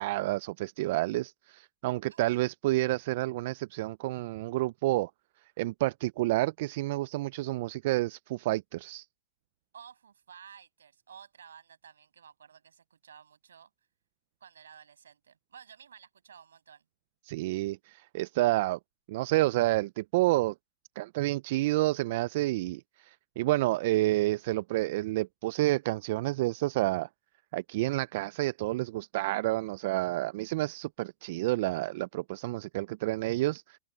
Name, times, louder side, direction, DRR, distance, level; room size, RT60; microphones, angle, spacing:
voice 1, 0.0-5.1 5.6-9.1 17.2-18.8 19.1-20.5 21.0-27.1 27.5-33.8, right 18 dB, 60° right, 0.7 m, -29 dB
voice 2, 2.1-2.4 9.7-13.7 14.4-16.8, right 8 dB, 80° right, 7.4 m, -53 dB
hypercardioid pair, 100°, 0 cm